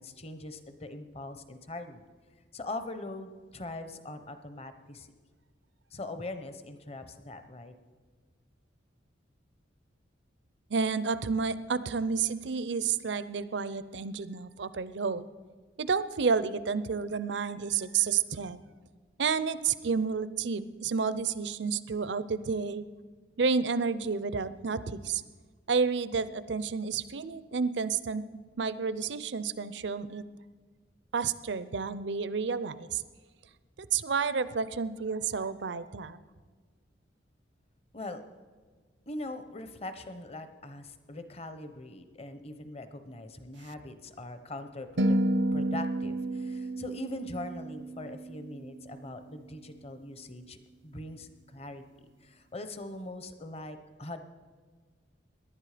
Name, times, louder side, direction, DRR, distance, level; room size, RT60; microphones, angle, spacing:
voice 1, 0.0-2.1 2.5-5.1 5.9-7.7 37.9-38.2 39.1-45.2 45.5-51.8 52.2-54.2, left 2 dB, 35° left, 9 dB, 0.9 m, -41 dB
voice 2, 10.7-15.2 15.8-18.6 19.2-22.8 23.4-25.2 25.7-30.2 31.1-33.0 33.9-36.2, right 5 dB, 65° right, 15 dB, 0.6 m, -30 dB
sound 1, 45.0-49.3, right 1 dB, 85° right, 0.9 m, -31 dB
18.5 x 11.0 x 5.0 m, 1.5 s
head